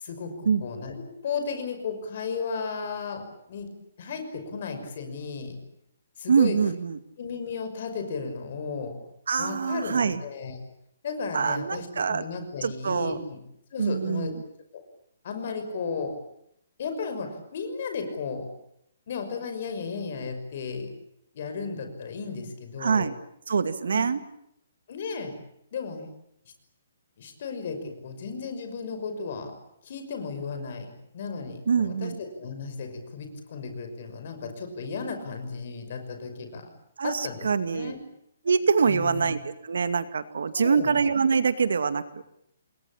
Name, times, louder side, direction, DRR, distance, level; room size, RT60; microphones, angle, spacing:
voice 1, 0.0-3.7 4.0-5.6 6.2-6.6 7.2-9.0 9.4-10.6 11.0-13.4 13.7-14.3 14.7-14.8 15.2-16.1 16.8-18.5 19.1-20.9 21.3-23.1 23.9-24.1 24.9-25.3 25.7-26.1 27.2-29.5 29.8-36.7 37.0-38.0 38.9-39.2 40.5-40.9, left 5 dB, 35° left, 6 dB, 5.9 m, -34 dB
voice 2, 6.3-7.0 9.3-10.2 11.3-12.2 12.6-13.2 13.8-14.4 22.8-23.1 23.5-24.2 31.7-32.2 37.0-37.9 38.4-42.0, right 5 dB, 70° right, 11 dB, 2.3 m, -24 dB
29.0 x 21.5 x 8.9 m, 0.75 s
hypercardioid pair, 180°, 0 cm